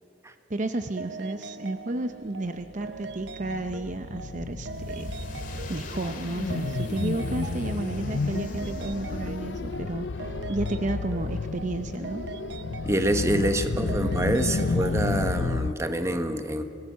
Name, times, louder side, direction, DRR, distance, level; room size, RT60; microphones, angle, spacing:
voice 1, 0.5-5.1 5.7-12.2, right 2 dB, 45° right, 8 dB, 0.7 m, -32 dB
sound 1, 1.0-15.7, right 3 dB, 75° right, 0.8 m, -41 dB
sound 2, 2.6-15.7, left 4 dB, 80° left, 0.5 m, -31 dB
sound 3, 4.6-9.9, left 1 dB, 50° left, 2.3 m, -39 dB
voice 2, 12.8-16.6, right 1 dB, 15° right, 8 dB, 1.2 m, -26 dB
25.5 x 19.0 x 7.3 m, 2.8 s
head